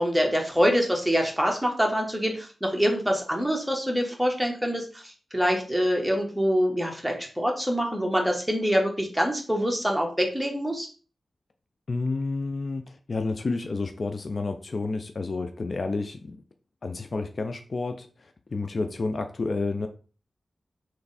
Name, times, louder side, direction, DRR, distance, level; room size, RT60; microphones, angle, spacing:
voice 1, 0.0-10.9, equal, 5° right, 1 dB, 1.3 m, -25 dB
voice 2, 11.9-12.8 13.1-16.4 16.8-18.1 18.5-19.9, left 3 dB, 55° left, 7 dB, 0.5 m, -30 dB
3.4 x 3.2 x 4.1 m, 0.38 s
cardioid pair, 55°, 0 cm